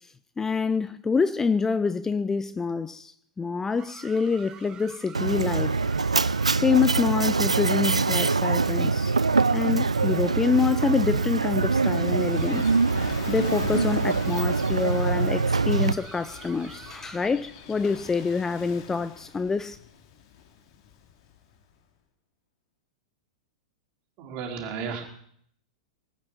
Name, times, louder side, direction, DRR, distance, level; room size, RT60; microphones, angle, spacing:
voice 1, 0.4-5.8 6.6-9.2 9.5-12.6 13.3-19.8, left 5 dB, 15° left, 0.6 m, -26 dB
sound 1, 3.8-17.3, right 9 dB, 25° right, 1.2 m, -47 dB
Mechanisms, 5.1-15.9, right 4 dB, 85° right, 0.6 m, -24 dB
Gull seagull / Waves surf, 11.3-21.7, left 8 dB, 50° left, 2.9 m, -43 dB
voice 2, 24.2-25.2, right 6 dB, 40° right, 4.1 m, -34 dB
19.5 x 9.3 x 7.6 m
figure-of-eight pair, 100°, 3 cm